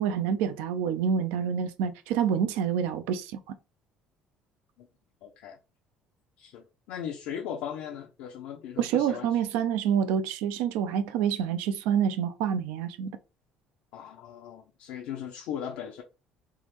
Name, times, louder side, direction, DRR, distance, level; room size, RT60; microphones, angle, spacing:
voice 1, 0.0-3.5 8.8-13.1, right 8 dB, 85° right, 0.4 m, -27 dB
voice 2, 5.2-5.6 6.4-9.3 13.9-16.0, left 9 dB, 75° left, 0.5 m, -38 dB
3.4 x 2.0 x 2.9 m
supercardioid pair, 95°, 2 cm